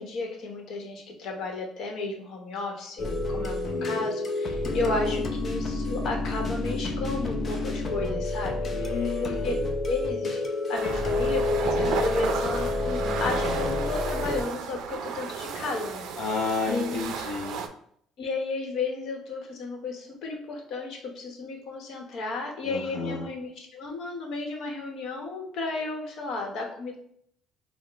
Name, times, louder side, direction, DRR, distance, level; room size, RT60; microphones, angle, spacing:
voice 1, 0.0-9.0 9.2-9.5 9.8-10.4 10.7-16.1 16.7-17.0 18.2-27.0, left 3 dB, 60° left, 1 dB, 0.9 m, -33 dB
sound 1, 3.0-14.4, left 2 dB, 30° left, 0.6 m, -29 dB
voice 2, 3.3-4.1 4.6-4.9 8.7-9.6 16.2-17.6 22.6-23.2, left 4 dB, 80° left, -3 dB, 0.6 m, -32 dB
sound 2, 10.7-17.7, right 6 dB, 65° right, 0.4 m, -33 dB
4.8 x 2.0 x 3.4 m, 0.66 s
cardioid pair, 135°, 0 cm